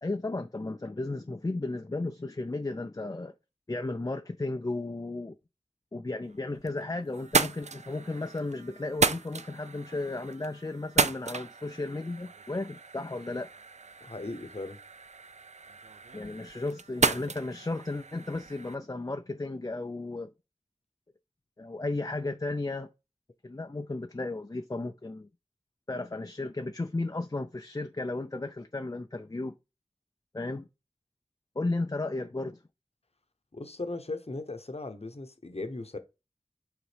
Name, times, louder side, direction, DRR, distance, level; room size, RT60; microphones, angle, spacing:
voice 1, 0.0-3.3 3.7-5.4 5.9-13.5 16.1-20.3 21.6-22.9 23.4-25.3 25.9-29.5 30.3-30.7 31.6-32.6, left 2 dB, 30° left, 0.4 m, -34 dB
sound 1, 6.3-6.8 7.1-18.7, right 5 dB, 60° right, 0.4 m, -33 dB
voice 2, 14.0-14.8 33.5-36.0, left 2 dB, 50° left, 0.8 m, -38 dB
7.9 x 3.6 x 3.3 m
wide cardioid pair, 40°, 13 cm